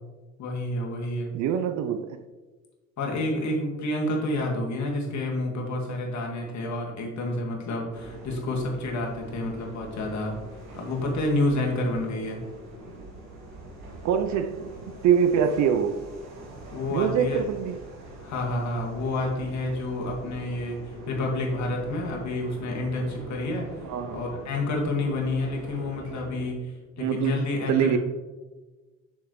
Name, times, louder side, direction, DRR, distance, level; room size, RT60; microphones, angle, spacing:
voice 1, 0.4-1.3 3.0-10.3 10.8-12.4 16.7-17.4 18.2-23.7 24.1-28.0, left 2 dB, 45° left, 1.9 m, -29 dB
voice 2, 1.3-2.2 14.0-14.7 15.0-16.0 16.9-17.8 23.9-24.2 27.0-27.3 27.7-28.0, right 8 dB, 50° right, 0.5 m, -24 dB
sound 1, 7.9-26.5, right 1 dB, 65° right, 2.0 m, -44 dB
6.7 x 6.2 x 3.1 m
hypercardioid pair, 55°, 38 cm